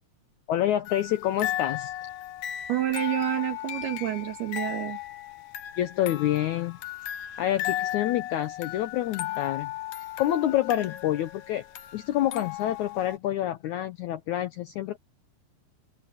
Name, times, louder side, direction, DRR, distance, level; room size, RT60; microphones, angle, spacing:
voice 1, 0.5-1.9 5.8-6.8 7.4-9.7 10.2-11.6 11.9-15.0, left 12 dB, 80° left, 1.7 m, -27 dB
sound 1, 0.9-13.2, left 13 dB, 65° left, 2.2 m, -35 dB
voice 2, 2.7-5.0, right 13 dB, 90° right, 3.9 m, -28 dB
omnidirectional pair, 4.4 m